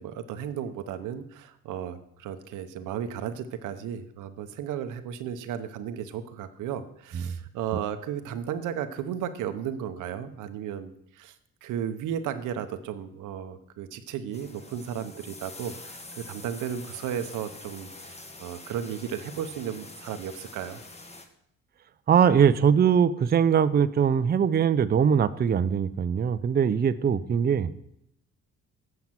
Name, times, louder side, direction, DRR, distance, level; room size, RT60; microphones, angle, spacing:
voice 1, 0.0-11.3 11.6-20.8, right 9 dB, 85° right, 9 dB, 0.9 m, -34 dB
sound 1, 14.3-21.3, left 2 dB, 20° left, 1.3 m, -45 dB
voice 2, 22.1-27.7, right 7 dB, 30° right, 12 dB, 0.5 m, -22 dB
7.8 x 5.8 x 7.3 m, 0.77 s
cardioid pair, 90°, 30 cm